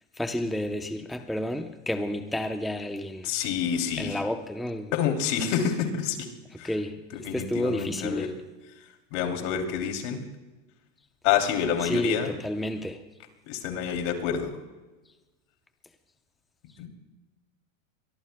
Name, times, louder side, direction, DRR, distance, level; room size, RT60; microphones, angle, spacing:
voice 1, 0.2-3.3 3.9-4.9 6.5-7.0 7.3-8.4 11.8-13.0, left 1 dB, ahead, 0.7 m, -30 dB
voice 2, 3.2-4.1 4.9-6.3 6.6-6.7 7.2-8.3 9.1-10.2 11.2-12.3 13.5-14.5 16.8-16.9, left 8 dB, 65° left, 3.0 m, -27 dB
23.0 x 23.0 x 2.2 m
supercardioid pair, 125°, 39 cm